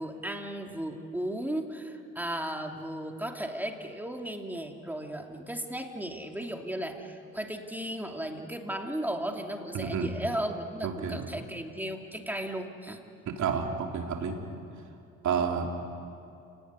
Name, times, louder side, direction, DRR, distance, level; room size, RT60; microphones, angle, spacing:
voice 1, 0.0-13.0, right 1 dB, 5° right, 3 dB, 2.8 m, -35 dB
voice 2, 9.7-10.1 10.8-11.3 13.3-14.4 15.2-15.7, right 6 dB, 70° right, 2 dB, 3.4 m, -30 dB
29.0 x 19.0 x 9.8 m, 2.5 s
cardioid pair, 90°, 30 cm